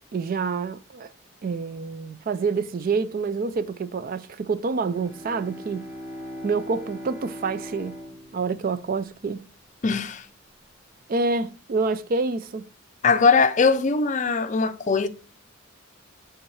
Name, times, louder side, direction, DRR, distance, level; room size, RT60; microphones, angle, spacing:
voice 1, 0.1-1.1 1.4-5.9 6.4-8.0 8.3-9.4 11.1-12.7, right 4 dB, 45° right, 0.4 m, -27 dB
Bowed string instrument, 4.8-9.6, equal, 10° right, 1.4 m, -40 dB
voice 2, 9.8-10.3 13.0-15.1, left 4 dB, 35° left, 0.5 m, -20 dB
8.9 x 3.6 x 3.1 m
head